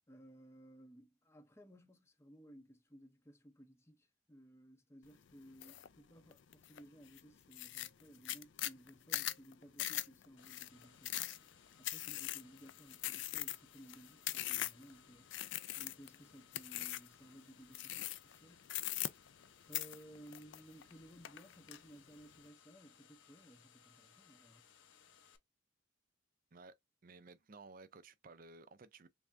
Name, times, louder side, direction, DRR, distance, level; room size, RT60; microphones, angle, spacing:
voice 1, 0.1-15.5 15.7-18.7 19.7-24.7, equal, 15° left, 0.6 m, -59 dB
sound 1, 5.6-5.9 6.3-6.8 7.2-7.3 7.5-14.9 15.3-16.2 16.5-17.1 17.7-18.4 18.7-19.5 19.7-20.9 21.2-21.8, left 14 dB, 65° left, 0.4 m, -41 dB
sound 2, 10.4-25.4, left 8 dB, 85° left, 0.8 m, -65 dB
voice 2, 27.0-29.1, right 3 dB, 45° right, 0.5 m, -56 dB
3.5 x 3.4 x 2.5 m
head